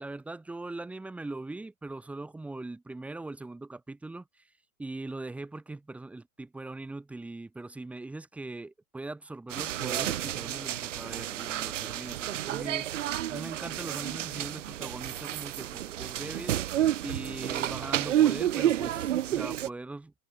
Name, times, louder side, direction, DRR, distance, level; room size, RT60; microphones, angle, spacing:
voice 1, 0.0-4.5 4.8-12.9 13.3-16.6 17.0-20.1, right 2 dB, 5° right, 3.0 m, -40 dB
sound 1, 9.5-19.7, right 12 dB, 60° right, 3.5 m, -30 dB
supercardioid pair, 180°, 41 cm